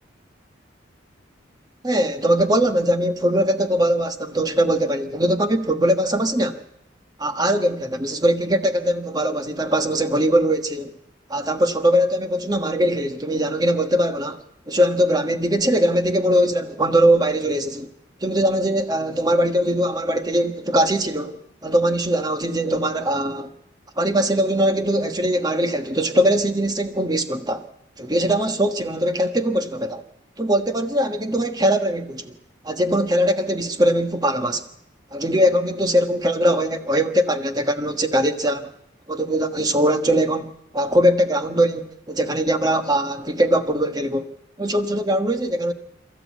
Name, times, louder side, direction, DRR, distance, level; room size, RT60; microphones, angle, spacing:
voice 1, 1.8-6.6 7.2-10.9 11.3-17.9 18.2-23.5 24.0-27.6 28.0-30.0 30.4-32.3 32.6-34.7 35.1-38.7 39.1-44.3 44.6-45.7, equal, 20° right, 1.3 m, -21 dB
27.5 x 14.5 x 8.3 m
head